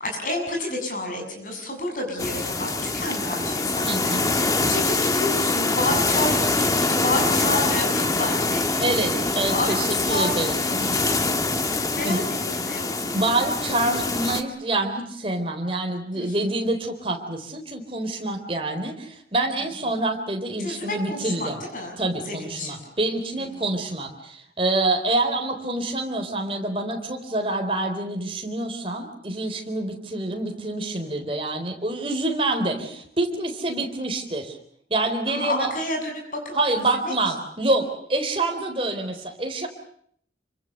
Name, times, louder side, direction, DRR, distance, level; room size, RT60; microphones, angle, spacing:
voice 1, 0.0-13.2 16.2-16.5 20.6-21.9 22.3-22.8 23.4-23.7 35.3-36.4 37.0-37.1, left 1 dB, 50° left, 2 dB, 7.6 m, -30 dB
sound 1, 2.2-14.4, left 3 dB, 20° left, 1.4 m, -24 dB
voice 2, 3.8-4.3 8.8-11.3 12.0-12.2 13.1-21.6 22.0-34.5 34.9-35.7 36.5-39.7, right 2 dB, 30° right, 3 dB, 4.1 m, -26 dB
27.5 x 25.0 x 6.7 m, 0.65 s
head